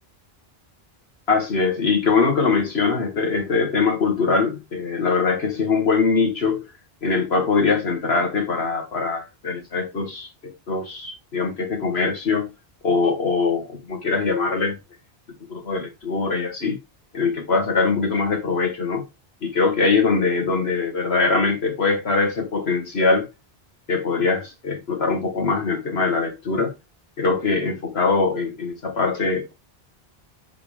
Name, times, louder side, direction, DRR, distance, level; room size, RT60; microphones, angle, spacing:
voice 1, 1.3-6.7 7.0-10.3 10.7-12.5 12.8-14.8 15.5-16.8 17.1-19.0 19.4-23.3 23.9-26.7 27.2-29.5, left 4 dB, 75° left, 2.0 m, -22 dB
7.7 x 3.6 x 3.7 m
omnidirectional pair, 1.1 m